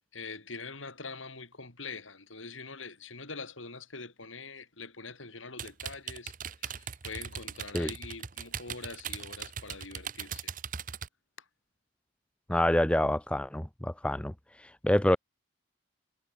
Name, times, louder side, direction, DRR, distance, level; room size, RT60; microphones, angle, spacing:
voice 1, 0.1-10.5, left 4 dB, 85° left, 5.8 m, -44 dB
sound 1, 5.6-11.1, right 8 dB, 40° right, 0.8 m, -39 dB
voice 2, 12.5-14.3 14.8-15.2, left 1 dB, 5° left, 0.4 m, -26 dB
head